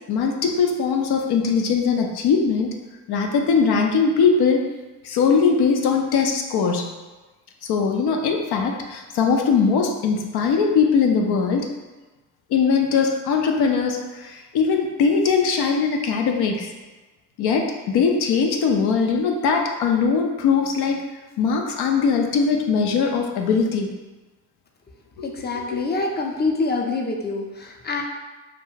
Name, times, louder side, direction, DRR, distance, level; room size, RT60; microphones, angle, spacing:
voice 1, 0.1-2.7 3.1-4.7 5.0-6.9 7.6-11.7 12.5-16.7 17.4-21.0 21.4-23.9 25.2-25.3 25.7-25.8, left 5 dB, 70° left, 2 dB, 0.5 m, -20 dB
voice 2, 25.2-28.0, left 3 dB, 25° left, 1 dB, 0.5 m, -26 dB
2.4 x 2.2 x 3.1 m, 1.2 s
supercardioid pair, 55°, 40 cm